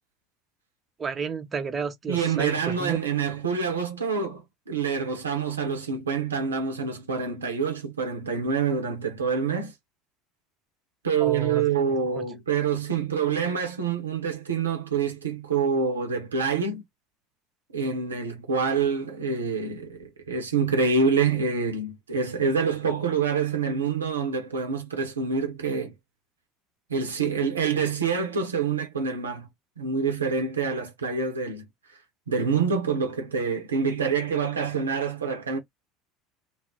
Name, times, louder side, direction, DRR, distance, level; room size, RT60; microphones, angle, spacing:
voice 1, 1.0-3.0 11.2-11.7 12.1-12.3, right 5 dB, 25° right, 0.6 m, -31 dB
voice 2, 2.1-4.4 4.7-9.7 11.0-16.8 17.7-25.9 26.9-29.5 29.8-31.7 32.3-35.6, right 5 dB, 80° right, 0.7 m, -26 dB
2.4 x 2.0 x 3.7 m
figure-of-eight pair, 70°, 0 cm